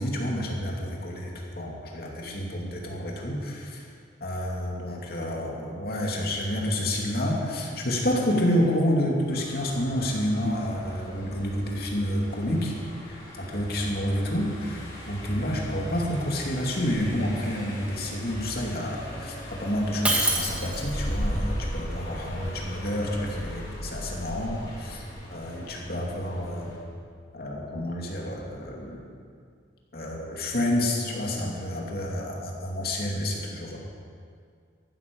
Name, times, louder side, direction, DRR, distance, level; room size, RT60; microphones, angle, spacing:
voice 1, 0.0-3.8 4.2-12.7 13.0-26.8 27.3-29.0 29.9-33.8, equal, 55° left, -1 dB, 2.6 m, -29 dB
Car passing by, 9.3-26.8, equal, 20° left, 4.5 m, -37 dB
Shatter, 20.0-21.1, right 1 dB, 5° right, 1.6 m, -25 dB
14.5 x 12.5 x 5.4 m, 2.2 s
head